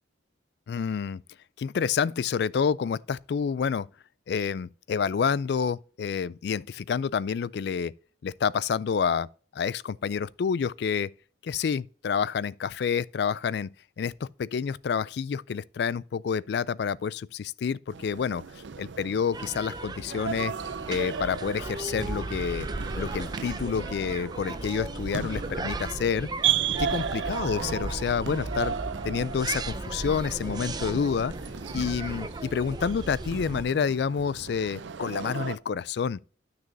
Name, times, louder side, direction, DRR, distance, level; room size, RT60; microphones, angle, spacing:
voice 1, 0.7-1.2 1.6-3.9 4.3-7.9 8.2-9.3 9.5-11.1 11.4-18.4 18.8-20.5 20.9-22.7 22.9-26.3 26.8-28.7 29.0-31.3 31.7-36.2, left 6 dB, 60° left, 0.3 m, -28 dB
sound 1, 17.9-35.6, right 8 dB, 75° right, 0.5 m, -35 dB
sound 2, 19.3-33.6, right 2 dB, 20° right, 0.5 m, -36 dB
12.0 x 6.3 x 2.7 m
head